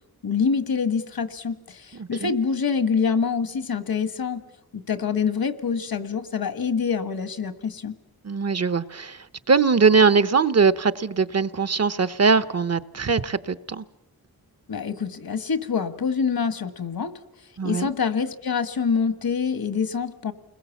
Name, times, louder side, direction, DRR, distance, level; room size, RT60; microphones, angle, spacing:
voice 1, 0.2-4.4 4.7-7.9 14.7-17.1 17.6-20.3, left 6 dB, 70° left, 1.5 m, -26 dB
voice 2, 2.0-2.3 8.2-13.8 17.6-17.9, right 5 dB, 45° right, 0.9 m, -21 dB
29.5 x 21.5 x 7.2 m
wide cardioid pair, 110°, 36 cm